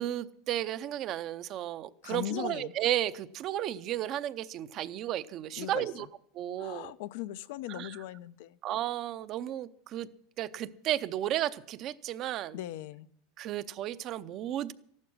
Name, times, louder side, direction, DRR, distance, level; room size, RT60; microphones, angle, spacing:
voice 1, 0.0-6.1 6.3-6.9 7.7-8.0 8.6-10.1 10.4-12.6 13.4-14.7, right 12 dB, 35° right, 13 dB, 0.6 m, -33 dB
voice 2, 2.0-2.7 5.6-5.9 6.6-8.6 12.5-13.1, left 14 dB, 65° left, 14 dB, 0.6 m, -39 dB
14.5 x 11.5 x 6.2 m, 0.69 s
supercardioid pair, 165°, 0 cm